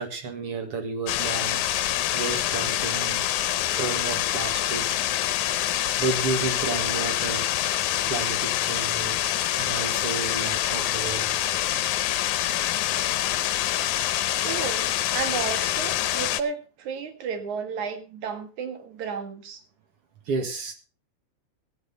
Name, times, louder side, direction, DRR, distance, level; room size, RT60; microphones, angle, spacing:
voice 1, 0.0-3.3 3.8-4.8 6.0-7.5 8.1-11.7 20.3-20.7, right 4 dB, 50° right, 5 dB, 2.6 m, -32 dB
sound 1, 1.1-16.4, left 13 dB, 80° left, 2.1 m, -26 dB
voice 2, 14.4-19.6, right 6 dB, 70° right, 7 dB, 3.0 m, -33 dB
16.5 x 9.9 x 3.9 m, 0.34 s
omnidirectional pair, 3.6 m